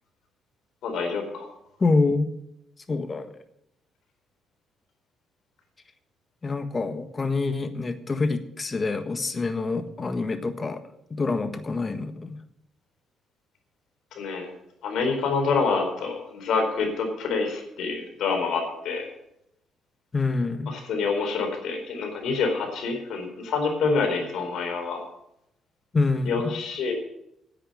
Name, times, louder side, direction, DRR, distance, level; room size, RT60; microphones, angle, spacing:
voice 1, 0.8-1.5 14.1-14.5 14.8-19.1 20.7-25.0 26.3-26.9, left 4 dB, 75° left, 4 dB, 4.3 m, -27 dB
voice 2, 1.8-2.3 2.9-3.3 6.4-10.8 11.1-12.4 20.1-20.7 25.9-26.5, left 3 dB, 30° left, 9 dB, 1.5 m, -26 dB
10.5 x 8.4 x 8.1 m, 0.80 s
cardioid pair, 80°, 0 cm